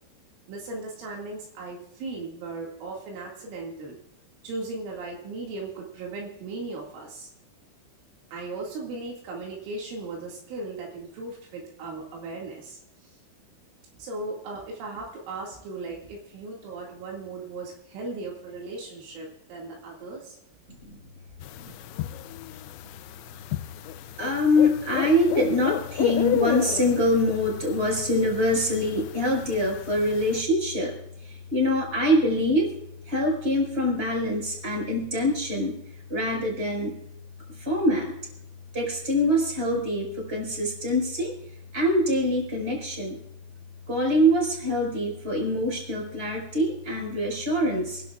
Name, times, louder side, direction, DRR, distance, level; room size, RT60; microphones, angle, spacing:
voice 1, 0.5-4.0 4.4-7.3 8.3-13.1 14.0-20.4, right 3 dB, 75° right, -2 dB, 4.5 m, -37 dB
sound 1, 21.4-30.4, left 12 dB, 85° left, 2.7 m, -33 dB
voice 2, 24.2-30.9 31.2-32.7 33.1-35.8 36.1-36.9 37.6-38.1 38.7-41.3 41.7-43.2 43.9-48.0, left 1 dB, 10° right, -1 dB, 4.9 m, -24 dB
28.0 x 11.5 x 2.4 m, 0.81 s
omnidirectional pair, 5.8 m